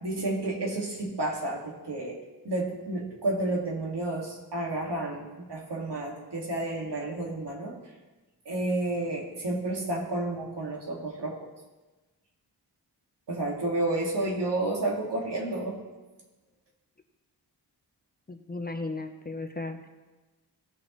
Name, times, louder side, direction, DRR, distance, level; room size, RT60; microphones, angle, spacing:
voice 1, 0.0-7.8 8.5-11.4 13.3-15.8, right 2 dB, 75° right, -1 dB, 2.0 m, -31 dB
voice 2, 18.3-19.9, left 2 dB, 25° left, 6 dB, 0.6 m, -35 dB
17.0 x 6.3 x 3.0 m, 1.2 s
wide cardioid pair, 120°, 41 cm